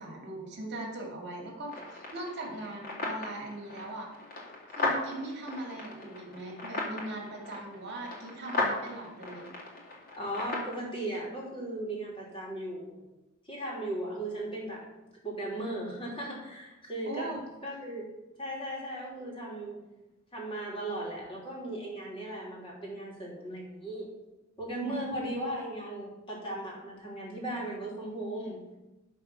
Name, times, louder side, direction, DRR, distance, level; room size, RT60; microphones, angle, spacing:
voice 1, 0.0-4.1 4.7-9.5 17.0-17.4 24.8-25.1, right 2 dB, 55° right, -1 dB, 2.2 m, -40 dB
sound 1, 1.7-10.7, left 2 dB, 45° left, 2.6 m, -37 dB
voice 2, 10.2-13.0 13.5-14.8 15.2-17.3 17.6-18.1 18.4-19.8 20.3-24.1 24.6-28.6, right 1 dB, 25° left, -3 dB, 2.9 m, -37 dB
12.0 x 4.2 x 5.9 m, 1.0 s
head